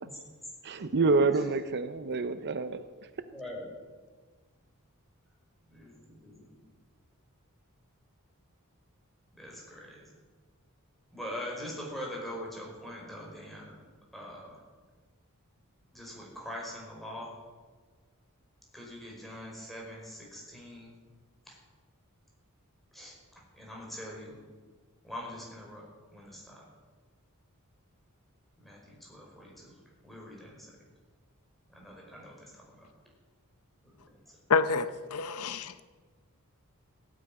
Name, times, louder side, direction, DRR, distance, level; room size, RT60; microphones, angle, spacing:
voice 1, 0.6-2.8, right 3 dB, 50° right, 11 dB, 0.7 m, -27 dB
voice 2, 3.2-3.7 5.7-6.5 9.4-10.0 11.1-13.7 14.1-14.6 15.9-17.3 18.7-20.9 21.5-21.6 22.9-23.1 23.5-24.4 25.0-26.6 28.6-29.7 30.0-30.7 31.7-32.9 33.8-33.9 34.3-34.4, equal, ahead, -3 dB, 5.1 m, -43 dB
voice 3, 34.5-35.8, left 4 dB, 80° left, 13 dB, 0.8 m, -28 dB
16.5 x 9.2 x 9.2 m, 1.4 s
head